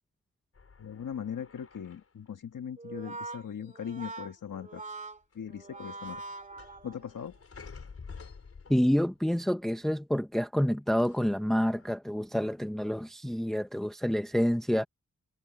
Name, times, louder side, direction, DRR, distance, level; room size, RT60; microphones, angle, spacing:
sound 1, 0.5-2.3 3.5-4.1 4.3-4.9 5.3-9.3 11.0-11.9, left 5 dB, 50° left, 5.5 m, -51 dB
voice 1, 0.8-4.8 5.3-6.2 6.8-7.4, left 8 dB, 80° left, 1.7 m, -39 dB
Brass instrument, 2.8-7.3, right 3 dB, 25° right, 2.1 m, -43 dB
voice 2, 8.7-14.8, equal, ahead, 0.8 m, -28 dB
wide cardioid pair, 165°, 31 cm